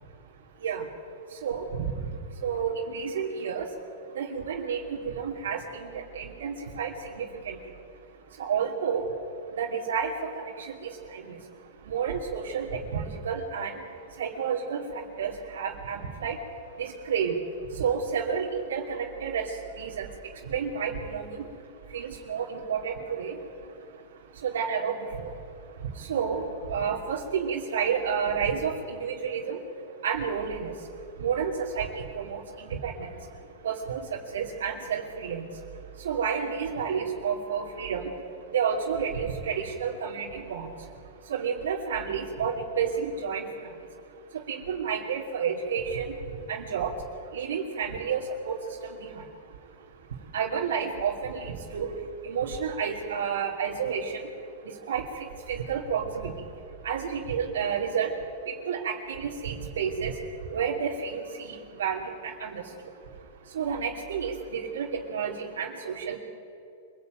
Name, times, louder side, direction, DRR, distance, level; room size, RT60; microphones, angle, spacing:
voice 1, 1.4-1.9 2.4-3.7 4.1-7.6 8.4-9.1 9.6-11.4 11.9-13.8 14.2-16.4 16.8-17.4 17.7-20.1 20.5-21.4 21.9-23.4 24.4-25.3 25.9-29.6 30.0-30.7 31.2-33.1 33.6-35.5 36.0-38.1 38.5-40.7 41.3-43.7 44.3-46.1 46.5-46.9 47.3-49.2 50.3-51.9 52.2-54.2 54.9-56.3 56.8-58.1 58.5-60.2 60.5-62.6 63.5-66.2, right 6 dB, 85° right, -1 dB, 2.8 m, -30 dB
25.0 x 17.0 x 9.3 m, 2.6 s
supercardioid pair, 140°, 0 cm